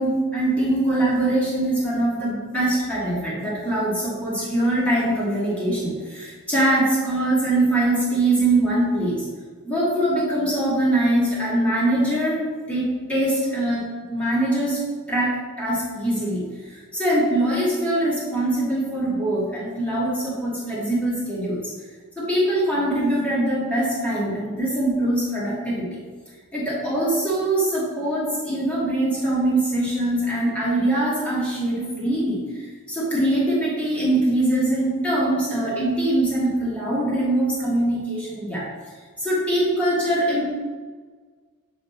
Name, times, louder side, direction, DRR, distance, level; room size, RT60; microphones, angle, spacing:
voice 1, 0.0-9.3 9.6-14.8 15.1-21.7 22.2-25.9 26.5-38.7 39.2-40.5, right 1 dB, 5° left, -8 dB, 1.8 m, -23 dB
7.6 x 3.4 x 4.0 m, 1.5 s
head